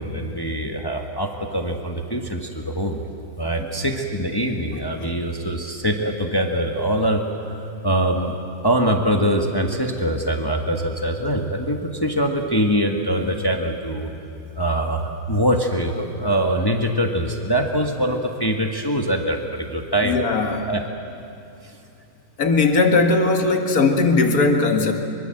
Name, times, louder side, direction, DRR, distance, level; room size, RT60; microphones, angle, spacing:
voice 1, 0.0-3.0 3.4-7.2 7.8-8.3 8.6-14.1 14.5-20.2 20.7-20.8, equal, 15° left, 3 dB, 1.5 m, -23 dB
voice 2, 20.0-20.7 22.4-24.9, left 3 dB, 75° left, 4 dB, 2.3 m, -18 dB
24.5 x 24.5 x 7.8 m, 2.5 s
omnidirectional pair, 1.6 m